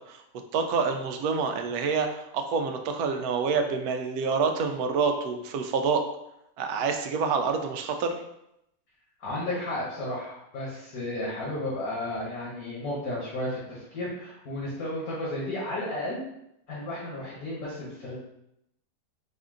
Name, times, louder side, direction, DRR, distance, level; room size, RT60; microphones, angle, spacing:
voice 1, 0.5-6.0 6.6-8.2, right 5 dB, 80° right, 5 dB, 1.1 m, -27 dB
voice 2, 9.2-16.2 16.7-18.2, left 1 dB, 75° left, -6 dB, 1.6 m, -33 dB
4.2 x 2.6 x 3.6 m, 0.81 s
omnidirectional pair, 1.6 m